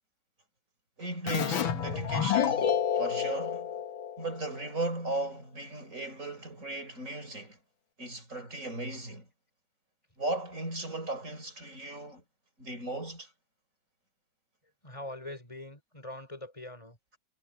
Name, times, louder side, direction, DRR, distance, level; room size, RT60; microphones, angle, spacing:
voice 1, 1.0-3.7 4.2-7.6 8.0-9.3 10.2-12.2 12.6-13.3, right 2 dB, 40° right, 5.3 m, -36 dB
Keyboard (musical), 1.3-4.6, left 8 dB, 80° left, 2.1 m, -29 dB
voice 2, 14.8-17.0, left 1 dB, 15° left, 4.9 m, -43 dB
omnidirectional pair, 2.1 m